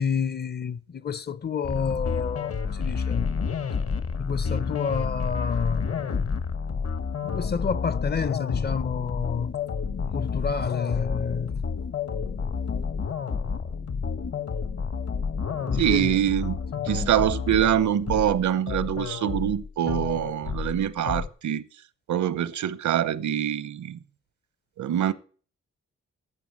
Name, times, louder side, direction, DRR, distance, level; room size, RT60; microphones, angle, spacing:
voice 1, 0.0-3.3 4.2-6.2 7.2-9.6 10.1-11.6 12.1-12.6 15.6-16.2 16.7-16.9, left 6 dB, 35° left, 0.5 m, -29 dB
sound 1, 1.6-21.3, left 5 dB, 55° left, 1.1 m, -30 dB
voice 2, 15.8-16.6 16.8-21.6 22.1-24.0 24.8-25.1, right 10 dB, 85° right, 0.9 m, -24 dB
11.0 x 7.1 x 7.2 m
cardioid pair, 110°, 29 cm